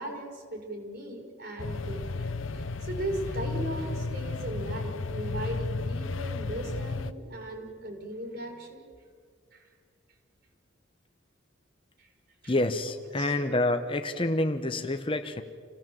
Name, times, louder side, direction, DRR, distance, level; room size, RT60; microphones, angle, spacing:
voice 1, 0.0-8.8 9.5-9.7 12.0-12.1 12.4-12.5 13.2-13.4, right 1 dB, 50° right, 1 dB, 5.0 m, -38 dB
sound 1, 1.6-7.1, left 3 dB, 70° left, 0.8 m, -33 dB
voice 2, 12.5-15.4, left 2 dB, 25° left, 8 dB, 1.0 m, -28 dB
28.5 x 17.5 x 7.7 m, 2.1 s
head